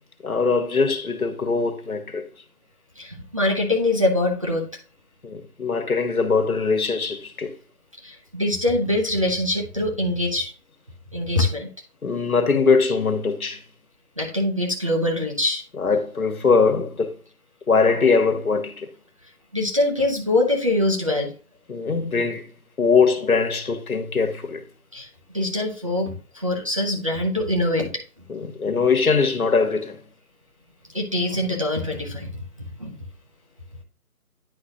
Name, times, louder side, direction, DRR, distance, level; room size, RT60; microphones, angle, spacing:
voice 1, 0.2-2.2 5.2-7.5 12.0-13.6 15.8-17.1 17.7-18.9 21.7-22.4 22.8-24.6 28.3-30.0, left 4 dB, 70° left, 1.5 m, -21 dB
voice 2, 3.0-4.7 8.0-10.5 11.1-11.7 14.2-15.6 19.5-21.3 24.9-25.1 25.3-27.9 30.9-32.4 32.8-33.0, left 1 dB, 25° right, 0.7 m, -23 dB
9.8 x 5.0 x 2.8 m
figure-of-eight pair, 155°, 45 cm